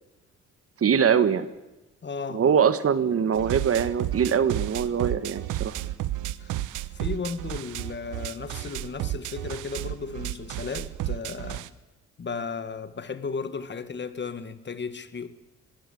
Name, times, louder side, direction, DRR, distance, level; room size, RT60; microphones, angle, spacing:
voice 1, 0.8-1.5 2.3-5.8, right 7 dB, 50° right, 1.5 m, -23 dB
voice 2, 2.0-2.4 6.4-6.6 6.9-11.7 12.2-15.3, left 5 dB, 35° left, 1.7 m, -35 dB
sound 1, 3.3-11.7, right 14 dB, 85° right, 1.0 m, -32 dB
21.5 x 16.0 x 8.6 m
cardioid pair, 90°, 30 cm